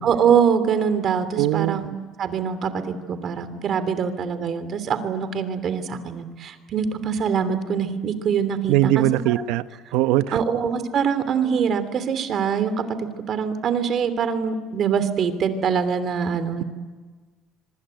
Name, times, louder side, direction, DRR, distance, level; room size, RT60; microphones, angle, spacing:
voice 1, 0.0-1.9 2.2-9.4 10.3-16.6, right 7 dB, 40° right, 11 dB, 2.9 m, -24 dB
voice 2, 1.4-1.9 8.7-9.6 9.9-10.4, right 15 dB, 85° right, 12 dB, 1.1 m, -20 dB
25.5 x 24.5 x 9.2 m, 1.4 s
cardioid pair, 145°, 0 cm